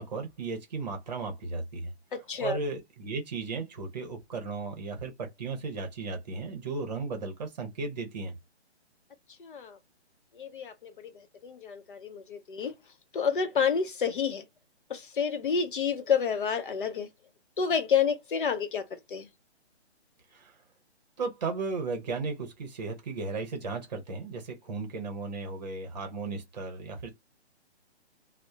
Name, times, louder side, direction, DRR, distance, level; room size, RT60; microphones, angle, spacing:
voice 1, 0.0-1.9 2.4-8.4 20.3-20.5 21.2-27.1, right 4 dB, 40° right, 0.8 m, -35 dB
voice 2, 2.1-2.6 9.4-9.8 10.4-10.9 11.4-12.7 13.1-14.4 14.9-17.1 17.6-19.3, left 6 dB, 50° left, 0.7 m, -29 dB
2.7 x 2.1 x 2.2 m
hypercardioid pair, 160°, 33 cm